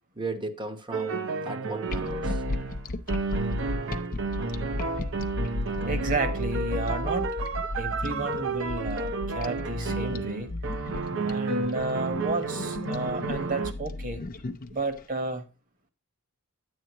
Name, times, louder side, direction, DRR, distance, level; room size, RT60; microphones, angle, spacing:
voice 1, 0.2-2.4 4.1-4.2, right 2 dB, 20° right, 0.9 m, -36 dB
sound 1, 0.9-13.7, right 4 dB, 60° right, 0.7 m, -31 dB
sound 2, 1.9-15.0, left 2 dB, 40° left, 0.6 m, -34 dB
voice 2, 5.8-7.4 7.8-10.5 11.2-14.2 14.7-15.5, right 3 dB, 35° right, 1.3 m, -32 dB
10.0 x 7.9 x 3.0 m
head